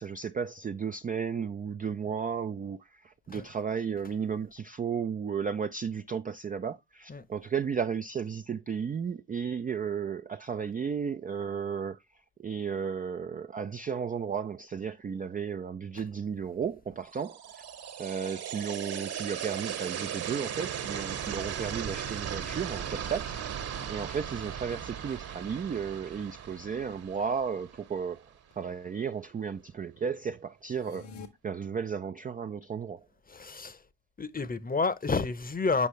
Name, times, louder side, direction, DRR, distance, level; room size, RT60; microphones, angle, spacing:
voice 1, 0.0-12.0 12.4-17.4 18.0-23.5 23.9-28.2 28.6-31.1 31.4-33.0, right 6 dB, 20° right, 0.3 m, -34 dB
sound 1, 17.1-28.2, right 8 dB, 55° right, 1.5 m, -37 dB
sound 2, 30.6-31.3, left 5 dB, 80° left, 1.7 m, -45 dB
voice 2, 33.3-33.8 34.2-35.9, left 4 dB, 20° left, 0.8 m, -30 dB
8.3 x 5.3 x 3.1 m
supercardioid pair, 75°, 45 cm